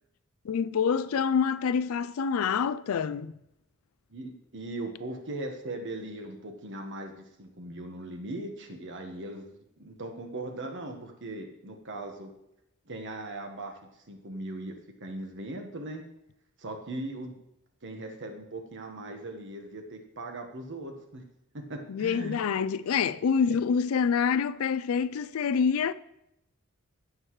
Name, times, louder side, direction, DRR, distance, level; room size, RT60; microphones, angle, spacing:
voice 1, 0.4-3.3 21.9-25.9, left 6 dB, 70° left, 0.4 m, -26 dB
voice 2, 4.1-12.3 12.9-13.8 14.1-14.7 15.0-16.0 16.6-17.4 17.8-21.2 21.5-22.4 23.5-23.6, right 2 dB, 55° right, 1.3 m, -39 dB
15.5 x 6.0 x 3.2 m
head